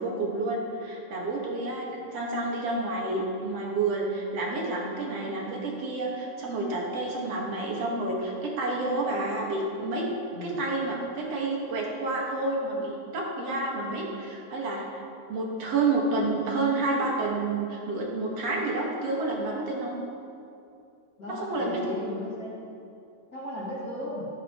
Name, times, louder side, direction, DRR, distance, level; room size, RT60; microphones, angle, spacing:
voice 1, 0.0-10.0 10.4-15.0 15.3-20.0 21.4-21.8, right 2 dB, 55° right, -2 dB, 1.8 m, -29 dB
voice 2, 21.2-22.6 23.3-24.3, left 1 dB, 35° left, -8 dB, 1.5 m, -35 dB
15.5 x 9.7 x 3.0 m, 2.5 s
omnidirectional pair, 4.8 m